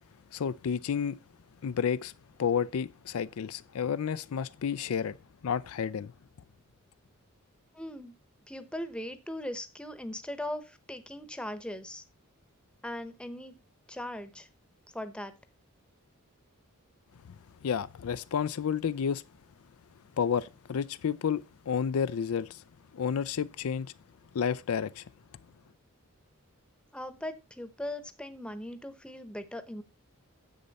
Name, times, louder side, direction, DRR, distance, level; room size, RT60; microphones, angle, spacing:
voice 1, 0.3-1.2 1.6-2.1 2.4-5.2 5.4-6.1 17.6-19.2 20.2-22.6 22.9-23.9 24.3-25.0, left 7 dB, 75° left, 0.4 m, -31 dB
voice 2, 7.7-8.2 8.5-12.0 12.8-13.6 13.9-14.5 14.9-15.3 26.9-29.8, left 1 dB, 5° left, 0.9 m, -39 dB
10.0 x 7.5 x 4.1 m
head